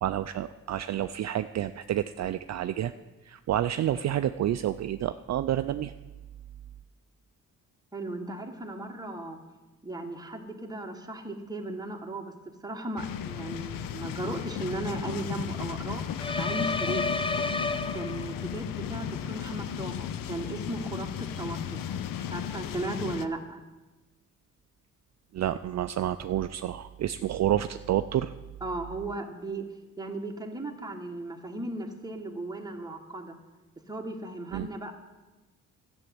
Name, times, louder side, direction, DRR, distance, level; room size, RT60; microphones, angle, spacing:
voice 1, 0.0-2.9 3.2-5.9 25.3-28.3 34.5-34.7, right 11 dB, 55° right, 10 dB, 0.4 m, -29 dB
voice 2, 7.9-9.4 9.8-12.3 12.6-16.1 16.3-17.2 17.9-21.8 22.2-23.6 28.6-29.7 30.0-33.3 33.9-34.9, right 2 dB, 10° right, 2 dB, 1.6 m, -36 dB
sound 1, 13.0-23.3, left 9 dB, 90° left, 0.7 m, -35 dB
sound 2, 16.2-18.5, left 3 dB, 15° left, 0.6 m, -31 dB
12.0 x 7.2 x 9.3 m, 1.2 s
cardioid pair, 105°, 33 cm